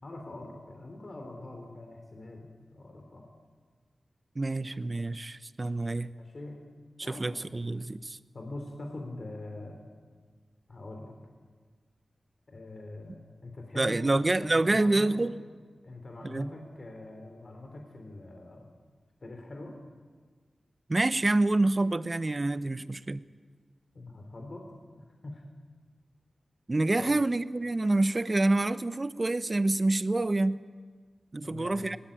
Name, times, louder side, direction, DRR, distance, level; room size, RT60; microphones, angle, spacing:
voice 1, 0.0-3.3 6.1-6.6 7.0-7.5 8.3-9.8 10.7-11.1 12.5-15.2 15.8-18.7 19.2-19.8 23.9-24.6 24.9-25.4 27.0-27.2 31.4-31.8, left 2 dB, 55° left, 3 dB, 3.3 m, -43 dB
voice 2, 4.4-6.1 7.1-8.2 13.8-15.3 16.2-16.5 20.9-23.2 26.7-30.6 31.3-32.0, right 2 dB, 35° right, 14 dB, 0.8 m, -27 dB
19.5 x 18.5 x 8.9 m, 1.5 s
cardioid pair, 50°, 0 cm